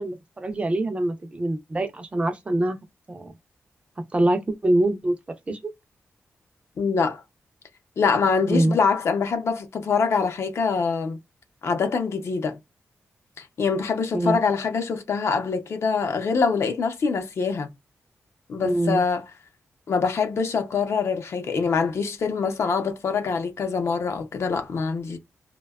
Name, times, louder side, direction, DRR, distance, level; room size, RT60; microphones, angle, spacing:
voice 1, 0.0-2.8 3.1-3.3 4.1-5.2 5.5-5.6 8.5-8.8 14.1-14.4 18.6-19.0, right 1 dB, 25° right, 0.4 m, -24 dB
voice 2, 6.8-7.2 8.0-11.2 11.6-12.6 13.4-17.7 18.5-19.2 19.9-25.2, left 5 dB, 65° left, 0.6 m, -24 dB
2.7 x 2.2 x 2.2 m
wide cardioid pair, 125°, 5 cm